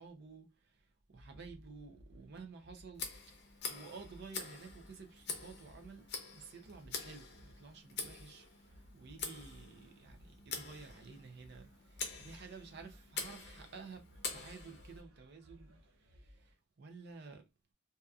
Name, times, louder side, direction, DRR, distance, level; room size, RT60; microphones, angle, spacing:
voice 1, 0.0-3.1 3.7-14.0 14.3-17.4, right 4 dB, 50° right, 0.5 m, -53 dB
sound 1, 1.1-16.5, equal, 90° right, 0.8 m, -61 dB
Tick, 2.9-15.0, left 5 dB, 50° left, 0.6 m, -46 dB
2.7 x 2.3 x 2.3 m
head